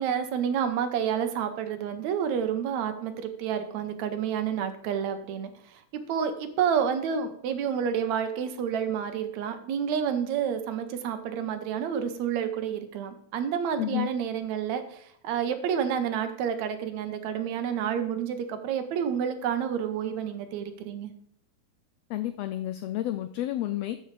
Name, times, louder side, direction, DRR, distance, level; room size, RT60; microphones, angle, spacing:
voice 1, 0.0-21.1, right 8 dB, 75° right, 8 dB, 2.0 m, -29 dB
voice 2, 13.8-14.1 22.1-24.0, left 13 dB, 90° left, 10 dB, 1.4 m, -30 dB
13.0 x 5.6 x 3.2 m, 0.65 s
omnidirectional pair, 3.4 m